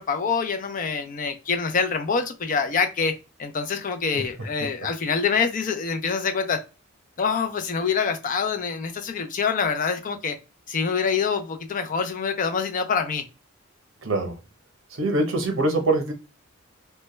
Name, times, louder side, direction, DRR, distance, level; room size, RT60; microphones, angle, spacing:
voice 1, 0.0-3.1 3.4-6.6 7.2-10.4 10.7-13.2, left 5 dB, 40° left, 0.4 m, -25 dB
voice 2, 14.0-14.4 14.9-16.1, right 2 dB, 80° right, 0.7 m, -23 dB
2.2 x 2.1 x 3.0 m
head